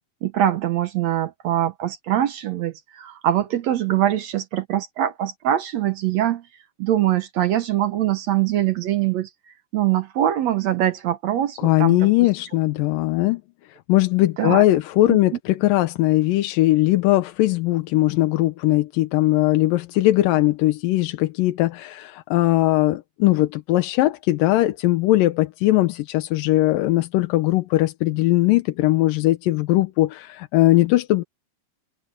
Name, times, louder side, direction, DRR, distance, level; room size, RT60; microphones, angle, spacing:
voice 1, 0.2-6.5 6.8-9.3 9.7-12.1 14.4-14.6 15.1-15.2, right 12 dB, 75° right, 1.6 m, -23 dB
voice 2, 11.6-13.4 13.7-31.2, left 17 dB, 75° left, 2.4 m, -19 dB
open air
omnidirectional pair, 4.3 m